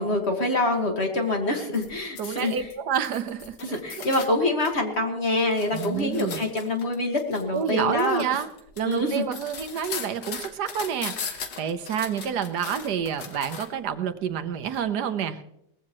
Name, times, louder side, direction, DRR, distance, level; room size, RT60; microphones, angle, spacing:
voice 1, 0.0-2.7 3.6-8.2 8.8-9.2, left 2 dB, 40° left, 3 dB, 2.0 m, -25 dB
sound 1, 1.7-4.8 5.2-13.9 14.7-14.8, left 6 dB, 80° left, 1.9 m, -39 dB
voice 2, 2.2-4.0 5.7-6.4 7.5-8.5 8.8-15.4, right 8 dB, 75° right, 10 dB, 1.4 m, -29 dB
20.0 x 15.0 x 3.0 m, 0.77 s
omnidirectional pair, 1.8 m